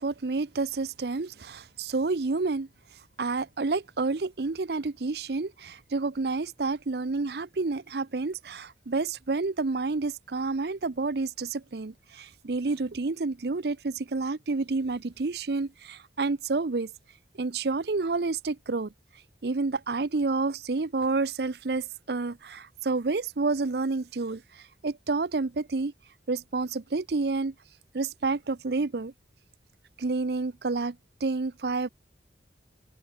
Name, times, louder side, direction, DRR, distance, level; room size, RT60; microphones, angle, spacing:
voice 1, 0.0-2.7 3.2-16.9 17.3-18.9 19.4-25.9 26.3-27.5 27.9-29.1 30.0-31.0 31.2-31.9, right 3 dB, 65° right, 0.7 m, -29 dB
open air
head